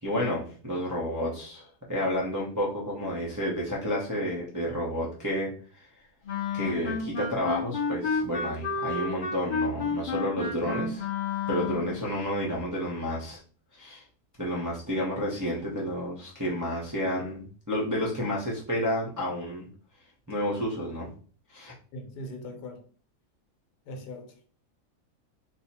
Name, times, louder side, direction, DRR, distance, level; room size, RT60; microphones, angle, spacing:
voice 1, 0.0-5.9 6.5-11.1 11.5-13.4 13.8-14.0 14.4-19.7 20.3-21.1 21.5-21.7, equal, 25° right, 0.4 m, -30 dB
Wind instrument woodwind instrument, 6.3-12.0, left 4 dB, 60° left, 0.5 m, -31 dB
voice 2, 21.9-22.9 23.9-24.5, left 1 dB, 90° left, 1.3 m, -40 dB
2.8 x 2.3 x 4.1 m
omnidirectional pair, 1.8 m